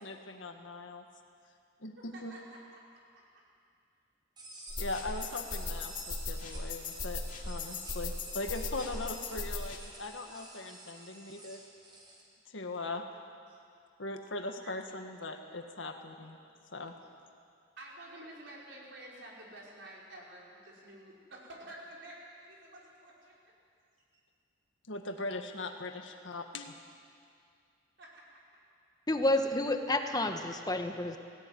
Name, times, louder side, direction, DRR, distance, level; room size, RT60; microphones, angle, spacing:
voice 1, 0.0-1.0 1.8-2.3 4.8-11.6 12.5-13.1 14.0-16.4 16.7-16.9 24.9-26.8, left 2 dB, 90° left, 4 dB, 1.8 m, -40 dB
voice 2, 2.0-2.6 2.9-3.4 13.5-13.6 14.6-14.7 17.8-23.3 28.0-28.2, right 1 dB, 70° right, -4 dB, 5.4 m, -50 dB
sound 1, 4.4-12.2, right 1 dB, 25° right, 3.9 m, -50 dB
sound 2, 4.7-9.8, left 3 dB, 45° left, 2.4 m, -38 dB
voice 3, 29.1-31.2, left 1 dB, 20° left, 5 dB, 1.2 m, -30 dB
18.5 x 17.0 x 9.6 m, 2.3 s
head